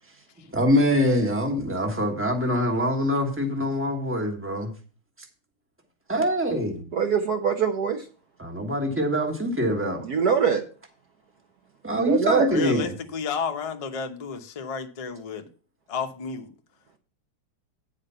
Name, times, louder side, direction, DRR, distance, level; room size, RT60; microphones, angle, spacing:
voice 1, 0.5-4.7 6.1-6.8 8.4-10.0 11.8-12.9, equal, 10° right, 1.1 m, -24 dB
voice 2, 6.9-8.0 10.0-10.6 11.9-12.5, right 7 dB, 60° right, 1.1 m, -23 dB
voice 3, 12.5-15.5 15.9-16.5, left 5 dB, 60° left, 0.3 m, -31 dB
9.4 x 5.0 x 5.5 m
omnidirectional pair, 2.2 m